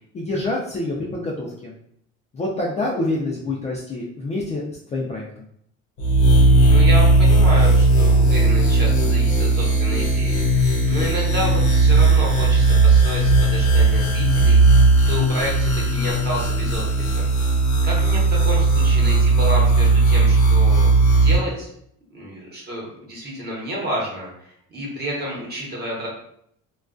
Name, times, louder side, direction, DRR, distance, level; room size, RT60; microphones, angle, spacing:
voice 1, 0.1-1.7 2.3-4.6 4.9-5.4, left 2 dB, 25° left, -4 dB, 0.3 m, -26 dB
sound 1, 6.0-21.4, right 2 dB, 85° left, 0.8 m, -16 dB
voice 2, 6.6-17.3 17.8-20.9 21.2-21.7 22.1-26.1, right 1 dB, 35° right, -3 dB, 0.9 m, -30 dB
2.3 x 2.2 x 2.4 m, 0.70 s
cardioid pair, 125°, 30 cm